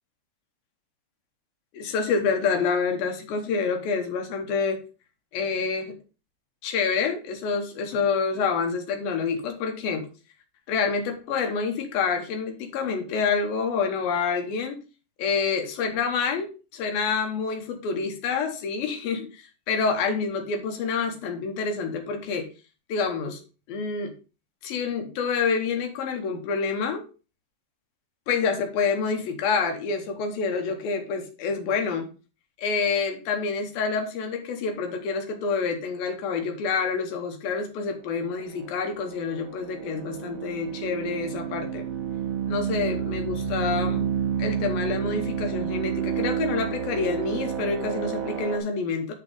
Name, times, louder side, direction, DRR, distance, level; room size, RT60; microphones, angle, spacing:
voice 1, 1.7-4.8 5.3-5.9 6.6-10.1 10.7-14.8 15.2-16.5 16.7-22.5 22.9-23.4 23.7-24.1 24.6-27.0 28.3-32.1 32.6-41.8 42.5-44.0 44.4-49.1, left 5 dB, 75° left, 4 dB, 2.8 m, -27 dB
sound 1, 38.5-48.6, right 8 dB, 75° right, 2.9 m, -30 dB
10.5 x 3.6 x 5.0 m, 0.34 s
omnidirectional pair, 4.3 m